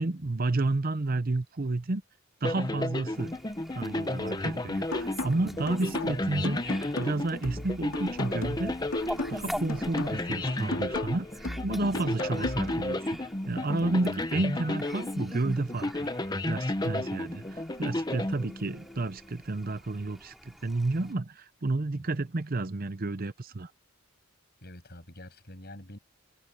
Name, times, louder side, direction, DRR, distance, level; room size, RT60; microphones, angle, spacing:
voice 1, 0.0-2.0 2.4-3.3 3.7-6.6 7.0-8.7 9.3-13.2 13.5-16.1 16.5-23.7, right 2 dB, 45° right, 0.7 m, -31 dB
sound 1, 2.4-19.0, left 1 dB, 20° left, 0.9 m, -33 dB
Fowl, 3.1-21.1, equal, ahead, 2.6 m, -46 dB
sound 2, 4.9-12.9, left 2 dB, 90° left, 2.4 m, -37 dB
voice 2, 13.5-14.0 21.9-22.0 24.6-26.0, left 1 dB, 50° left, 7.6 m, -47 dB
open air
head